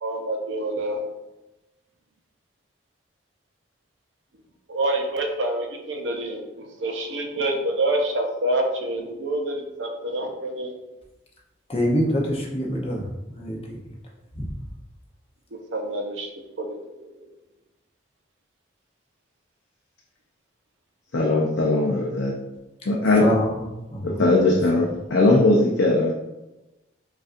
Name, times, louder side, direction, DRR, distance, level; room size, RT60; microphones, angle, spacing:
voice 1, 0.0-1.0 4.7-10.7 15.7-16.3 16.6-16.7 16.9-17.3, right 1 dB, 75° right, 2 dB, 0.7 m, -27 dB
voice 2, 11.7-13.8 14.3-14.4 23.2-23.6 23.9-24.3, equal, 30° left, -2 dB, 0.7 m, -25 dB
voice 3, 21.1-22.3 22.9-23.3 24.0-26.1, left 2 dB, 75° left, -2 dB, 0.5 m, -19 dB
5.2 x 2.5 x 2.5 m, 1.0 s
head